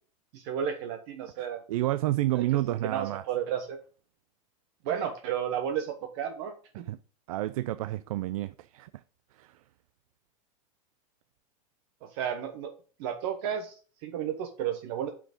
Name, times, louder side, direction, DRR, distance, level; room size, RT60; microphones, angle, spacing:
voice 1, 0.3-1.6 2.3-3.8 4.8-6.9 12.0-12.7 13.0-15.1, right 9 dB, 45° right, 1.1 m, -33 dB
voice 2, 1.4-3.2 6.9-7.0 7.3-9.0 9.3-9.6, right 15 dB, 75° right, 0.5 m, -30 dB
8.7 x 6.0 x 5.2 m
supercardioid pair, 180°, 18 cm